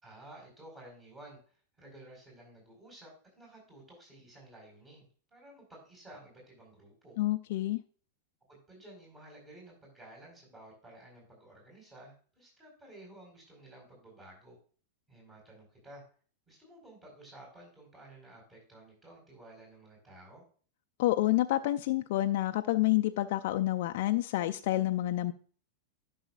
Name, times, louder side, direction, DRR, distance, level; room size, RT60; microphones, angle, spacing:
voice 1, 0.0-5.1 5.3-7.2 8.5-14.6 15.1-16.0 16.5-20.4, right 1 dB, 20° right, -2 dB, 4.6 m, -53 dB
voice 2, 7.2-7.8 21.0-25.3, left 16 dB, 60° left, 6 dB, 0.4 m, -28 dB
12.0 x 6.2 x 2.4 m, 0.41 s
hypercardioid pair, 105°, 0 cm